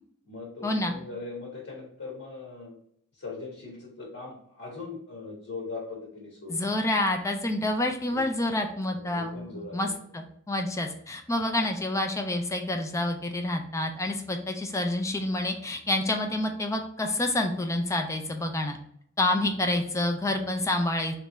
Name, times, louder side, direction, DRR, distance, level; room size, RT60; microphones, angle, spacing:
voice 1, 0.3-2.7 3.1-6.6 8.1-8.3 8.9-9.8, left 3 dB, 70° left, -3 dB, 1.3 m, -40 dB
voice 2, 6.5-9.9 10.1-18.8 19.2-21.1, left 1 dB, 15° left, 4 dB, 0.4 m, -28 dB
3.4 x 3.1 x 3.8 m, 0.69 s
head